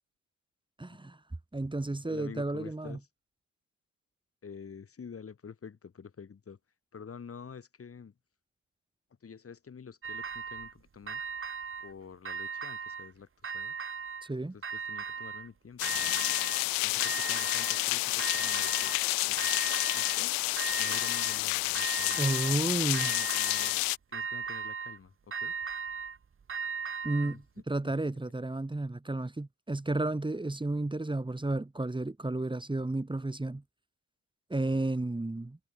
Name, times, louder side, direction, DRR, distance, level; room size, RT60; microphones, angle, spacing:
voice 1, 0.8-1.2 1.5-3.0 14.2-14.5 22.2-23.1 27.0-33.6 34.5-35.6, right 2 dB, 10° right, 3.9 m, -32 dB
voice 2, 2.0-3.1 4.4-6.6 6.9-8.1 9.2-11.2 11.8-13.7 14.4-16.0 16.8-19.0 19.2-19.5 19.9-20.4 20.8-22.2 22.9-23.8 24.1-25.5 27.2-27.4 27.8-27.9, left 6 dB, 35° left, 6.3 m, -48 dB
sound 1, 10.0-10.7 11.1-11.9 12.2-13.1 13.4-14.3 14.6-15.5 15.8-16.7 17.0-17.9 18.2-19.0 19.4-20.2 20.6-21.4 21.7-22.6 22.9-23.8 24.1-25.0 25.3-27.4, right 6 dB, 30° right, 2.8 m, -37 dB
sound 2, 15.8-24.0, left 26 dB, 60° left, 0.9 m, -30 dB
figure-of-eight pair, 50°, 39 cm